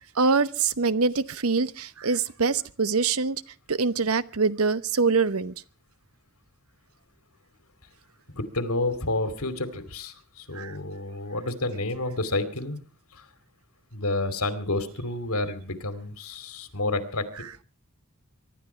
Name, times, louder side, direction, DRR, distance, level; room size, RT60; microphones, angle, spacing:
voice 1, 0.2-3.4 3.7-5.5 10.5-10.7, right 4 dB, 80° right, 0.9 m, -24 dB
voice 2, 8.4-12.8 13.9-17.2, left 2 dB, 85° left, 2.6 m, -29 dB
24.5 x 12.0 x 4.5 m
head